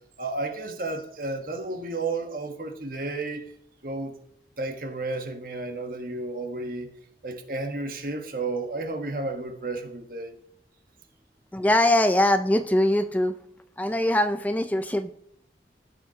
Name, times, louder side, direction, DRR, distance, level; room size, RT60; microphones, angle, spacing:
voice 1, 0.2-3.5 3.8-4.1 4.6-6.9 7.2-10.4, right 2 dB, 50° right, 1.4 m, -32 dB
voice 2, 11.5-13.3 13.8-15.1, left 1 dB, 10° left, 0.3 m, -22 dB
16.5 x 7.0 x 2.9 m
head